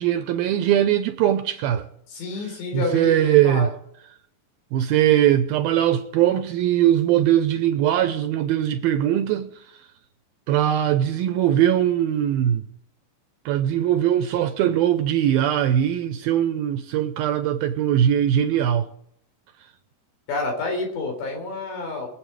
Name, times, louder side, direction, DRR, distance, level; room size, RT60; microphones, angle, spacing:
voice 1, 0.0-1.8 2.7-3.7 4.7-9.5 10.5-12.6 13.5-18.9, right 11 dB, 80° right, 2.3 m, -20 dB
voice 2, 2.1-3.7 20.3-22.1, left 3 dB, 90° left, 6.4 m, -29 dB
23.0 x 8.2 x 4.8 m
omnidirectional pair, 4.9 m